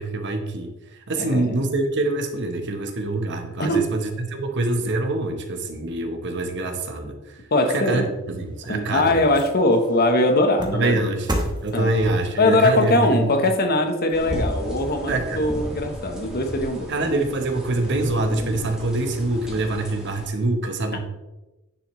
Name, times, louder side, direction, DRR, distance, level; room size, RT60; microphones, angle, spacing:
voice 1, 0.0-7.4 7.7-9.2 10.7-13.3 15.1-15.4 16.9-21.0, right 2 dB, 55° right, 5 dB, 1.0 m, -25 dB
voice 2, 1.2-1.5 3.6-3.8 7.5-8.1 8.7-11.0 11.7-11.9 12.4-16.9 20.9-21.0, left 1 dB, 45° left, 5 dB, 1.0 m, -21 dB
sound 1, 8.3-14.8 15.2-15.3, right 1 dB, 20° right, 1.1 m, -35 dB
sound 2, 14.1-20.3, equal, 5° right, 2.0 m, -33 dB
9.8 x 6.7 x 3.1 m, 1.0 s
head